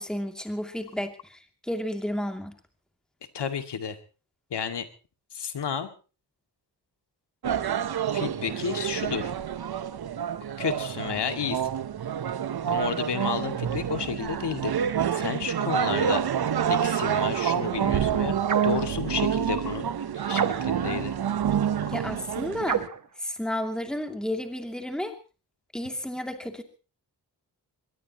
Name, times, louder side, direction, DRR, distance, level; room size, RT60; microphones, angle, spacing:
voice 1, 0.0-2.5 21.9-22.8 23.2-25.1 25.7-26.6, left 1 dB, ahead, 5 dB, 2.7 m, -32 dB
voice 2, 3.3-4.0 4.5-4.9 5.3-5.9 8.1-9.3 10.6-11.6 12.7-14.7 15.1-16.2 16.7-18.3 18.6-19.9 20.1-21.1 21.8-21.9, left 7 dB, 80° left, 8 dB, 2.3 m, -31 dB
sound 1, 7.4-22.9, right 8 dB, 65° right, 1.0 m, -28 dB
sound 2, 18.4-18.8 20.3-20.9 22.6-23.1, right 7 dB, 50° right, 1.4 m, -29 dB
23.0 x 21.0 x 3.0 m, 0.35 s
wide cardioid pair, 105°, 40 cm